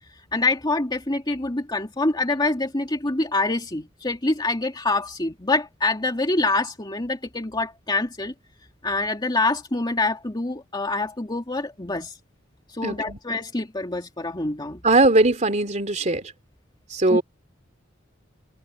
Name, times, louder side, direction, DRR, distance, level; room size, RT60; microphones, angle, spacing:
voice 1, 0.3-8.3 8.8-12.1 12.7-14.8 17.1-17.2, left 2 dB, 25° left, 2.3 m, -25 dB
voice 2, 12.8-13.2 14.8-16.3 16.9-17.2, right 2 dB, 40° right, 3.2 m, -20 dB
head